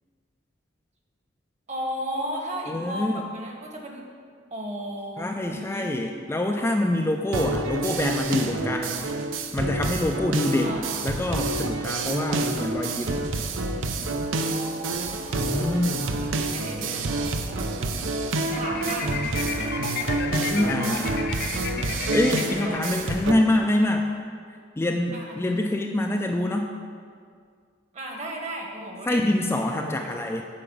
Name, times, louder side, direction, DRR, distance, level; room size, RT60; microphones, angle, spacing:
voice 1, 1.7-4.1 4.5-6.1 10.5-11.1 14.4-17.7 18.4-19.2 21.3-21.6 22.4-23.3 25.1-25.4 27.9-29.2 29.8-30.1, equal, 35° right, 1 dB, 1.2 m, -35 dB
voice 2, 2.7-3.2 5.2-9.1 9.5-13.3 15.3-16.1 20.5-21.2 22.1-24.1 24.8-26.7 29.1-30.4, left 1 dB, 15° left, 2 dB, 0.4 m, -25 dB
sound 1, 7.3-23.3, right 2 dB, 80° right, 0.6 m, -28 dB
sound 2, 18.5-23.7, left 5 dB, 55° left, 0.6 m, -33 dB
8.4 x 4.9 x 7.0 m, 2.1 s
head